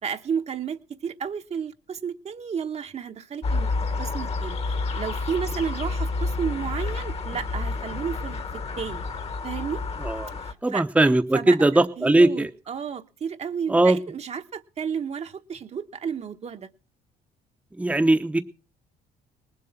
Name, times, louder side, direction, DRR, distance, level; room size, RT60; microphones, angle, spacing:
voice 1, 0.0-3.7 4.0-9.0 9.4-9.8 10.4-10.8 11.3-16.7, right 7 dB, 40° right, 7 dB, 1.1 m, -32 dB
sound 1, 3.4-10.5, left 3 dB, 35° left, 1.4 m, -29 dB
voice 2, 10.0-10.4 10.6-12.5 13.7-14.0 17.8-18.4, right 2 dB, 10° right, 6 dB, 0.9 m, -19 dB
19.5 x 7.7 x 5.9 m, 0.35 s
cardioid pair, 110°, 17 cm